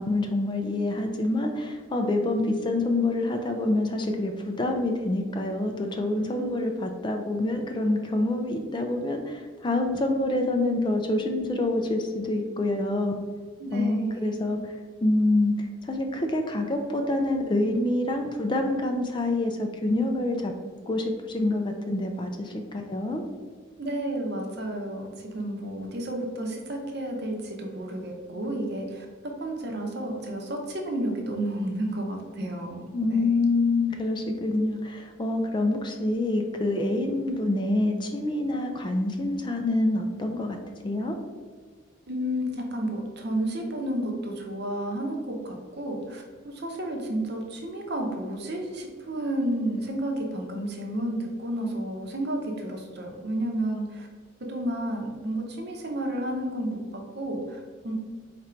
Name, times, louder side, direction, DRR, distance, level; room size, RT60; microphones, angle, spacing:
voice 1, 0.0-13.1 13.7-14.6 15.0-15.5 15.9-20.5 20.9-23.2 32.9-40.6 40.8-41.1, left 2 dB, 25° left, 4 dB, 0.3 m, -26 dB
voice 2, 13.6-14.4 23.8-29.1 29.4-33.3 42.1-54.1 54.5-57.9, right 1 dB, 55° right, 1 dB, 0.8 m, -31 dB
4.3 x 2.5 x 4.3 m, 1.6 s
head